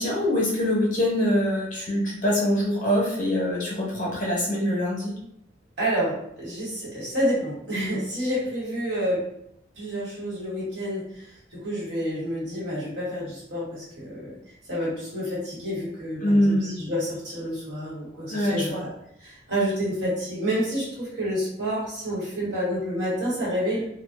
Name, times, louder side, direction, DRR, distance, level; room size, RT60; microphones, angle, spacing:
voice 1, 0.0-5.1 16.2-16.7 18.3-18.8, left 1 dB, 40° left, -5 dB, 0.8 m, -24 dB
voice 2, 5.8-9.2 9.8-14.3 14.7-18.9 19.2-23.8, equal, 60° right, -7 dB, 1.1 m, -29 dB
2.6 x 2.1 x 2.4 m, 0.76 s
head